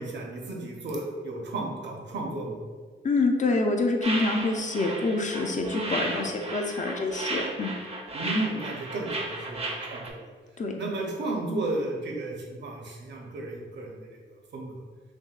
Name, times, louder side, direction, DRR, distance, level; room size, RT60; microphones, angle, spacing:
voice 1, 0.0-2.6 8.1-10.3 10.8-14.2 14.5-14.8, right 2 dB, 60° right, 0 dB, 0.8 m, -33 dB
voice 2, 3.0-7.7 10.6-10.7, left 3 dB, 40° left, 2 dB, 0.4 m, -26 dB
sound 1, 4.0-10.1, right 2 dB, 30° right, 0.5 m, -34 dB
6.2 x 2.2 x 2.3 m, 1.4 s
wide cardioid pair, 115°, 20 cm